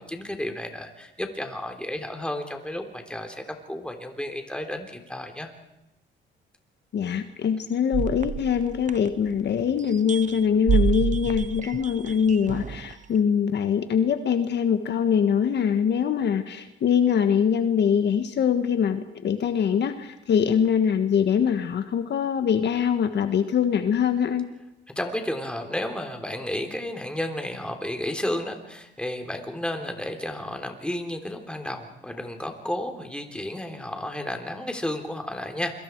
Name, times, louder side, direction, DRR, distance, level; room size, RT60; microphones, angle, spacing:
voice 1, 0.0-5.5 24.9-35.7, left 1 dB, 5° left, 4 dB, 3.5 m, -32 dB
voice 2, 6.9-24.5, left 7 dB, 60° left, 8 dB, 1.5 m, -23 dB
sound 1, 7.9-9.5 9.9-12.9, right 7 dB, 40° right, 0.8 m, -28 dB
28.5 x 23.5 x 4.7 m, 0.92 s
cardioid pair, 90°, 20 cm